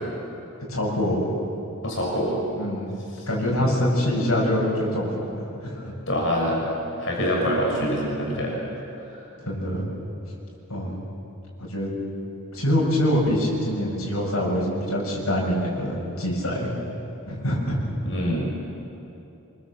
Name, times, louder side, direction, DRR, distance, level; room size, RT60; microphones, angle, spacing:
voice 1, 0.7-1.4 2.6-3.0 3.3-5.9 9.4-9.9 10.7-11.0 11.6-11.9 12.5-16.7 17.3-17.8, equal, 75° left, -3 dB, 7.6 m, -25 dB
voice 2, 1.8-2.4 3.1-3.3 3.6-3.8 6.1-6.7 7.0-8.5 9.0-9.3 18.0-18.5, equal, 60° left, -2 dB, 6.5 m, -25 dB
26.5 x 24.0 x 7.6 m, 2.8 s
head